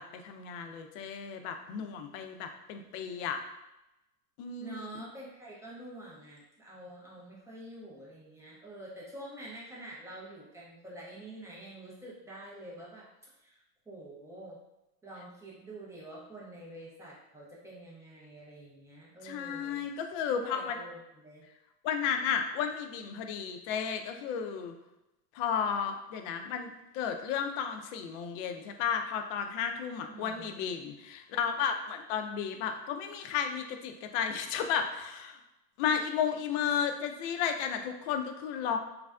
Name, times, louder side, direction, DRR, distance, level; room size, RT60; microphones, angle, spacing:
voice 1, 0.0-3.4 4.4-5.0 19.2-20.8 21.8-24.7 25.3-35.4 35.8-38.8, left 7 dB, 50° left, 5 dB, 0.5 m, -33 dB
voice 2, 4.6-13.1 13.4-13.6 13.9-14.6 15.0-19.9 20.4-21.4 30.1-30.6, right 1 dB, 5° right, -6 dB, 0.4 m, -47 dB
3.2 x 2.4 x 2.2 m, 0.92 s
hypercardioid pair, 110°, 48 cm